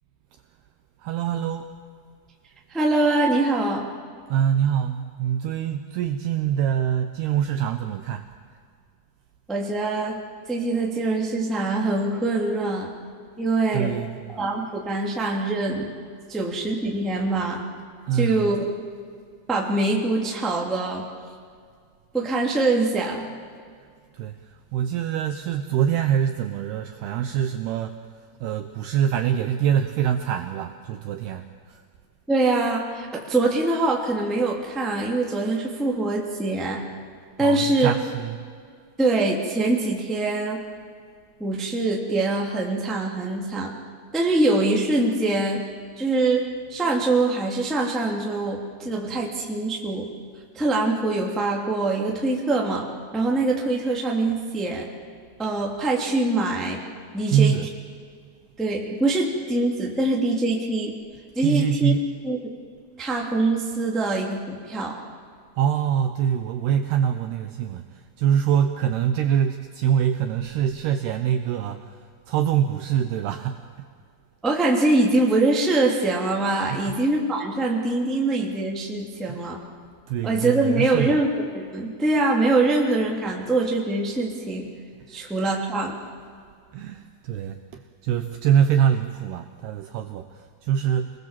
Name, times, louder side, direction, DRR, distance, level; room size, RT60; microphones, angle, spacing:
voice 1, 1.0-1.7 4.3-8.3 13.7-14.4 18.1-18.5 24.1-28.0 28.4-31.8 37.4-38.4 57.3-57.7 61.4-62.0 65.6-73.6 76.7-76.9 79.3-79.5 80.1-81.2 85.1-85.3 86.7-91.1, right 9 dB, 75° right, 7 dB, 2.4 m, -24 dB
voice 2, 2.7-3.8 9.5-10.2 10.5-12.9 13.4-13.9 14.3-15.9 16.3-17.6 18.1-18.7 19.5-21.0 22.1-23.3 32.3-36.8 37.4-37.9 39.0-40.6 41.4-43.7 44.1-45.6 46.0-50.1 50.5-52.9 53.1-54.8 55.4-56.8 57.1-57.5 58.6-60.9 61.3-61.9 62.2-62.4 63.0-65.0 74.4-79.6 80.2-81.3 81.5-84.7 85.1-85.9, right 2 dB, ahead, -1 dB, 1.3 m, -23 dB
27.0 x 19.5 x 7.5 m, 2.1 s
omnidirectional pair, 5.5 m